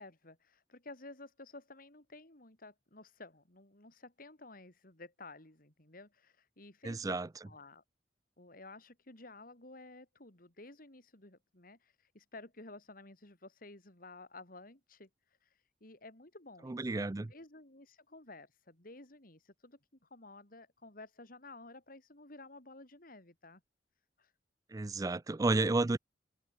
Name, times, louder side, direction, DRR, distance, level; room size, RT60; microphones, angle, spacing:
voice 1, 0.0-7.2 7.4-7.8 8.4-23.6 24.2-24.3, left 2 dB, 50° left, 3.9 m, -53 dB
voice 2, 6.8-7.3 16.7-17.3 24.7-26.0, right 2 dB, 20° right, 0.4 m, -31 dB
head